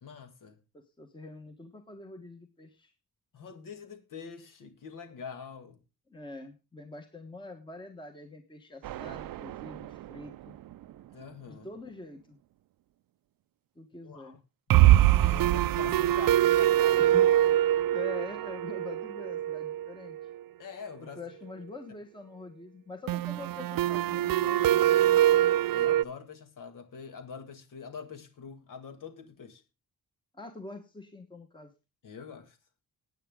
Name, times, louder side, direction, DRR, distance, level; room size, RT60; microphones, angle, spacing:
voice 1, 0.0-0.6 3.3-5.8 11.1-11.7 14.0-14.4 14.8-17.2 20.6-21.2 25.7-29.6 32.0-32.6, left 6 dB, 65° left, 2.0 m, -45 dB
voice 2, 0.7-2.9 6.1-10.5 11.5-12.4 13.8-14.4 17.0-17.3 17.9-20.2 21.0-25.0 30.3-31.7, left 3 dB, 15° left, 1.2 m, -45 dB
sound 1, 8.8-10.0 10.3-10.4 10.7-10.8 14.7-20.4 23.1-26.0, right 13 dB, 80° right, 0.6 m, -24 dB
17.5 x 8.9 x 3.6 m
wide cardioid pair, 165°, 34 cm